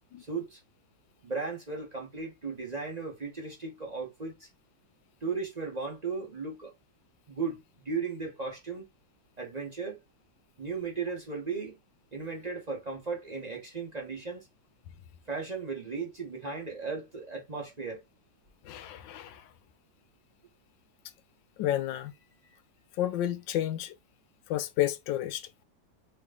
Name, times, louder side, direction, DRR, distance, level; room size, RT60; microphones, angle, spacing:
voice 1, 0.2-0.6 1.2-4.5 5.2-6.7 7.3-8.9 9.4-10.0 10.6-11.8 12.1-14.5 15.3-18.0, right 4 dB, 25° right, 1.0 m, -36 dB
voice 2, 18.6-19.5 21.6-22.1 23.0-24.0 24.5-25.5, left 12 dB, 80° left, 1.3 m, -31 dB
3.3 x 3.0 x 3.7 m
omnidirectional pair, 2.0 m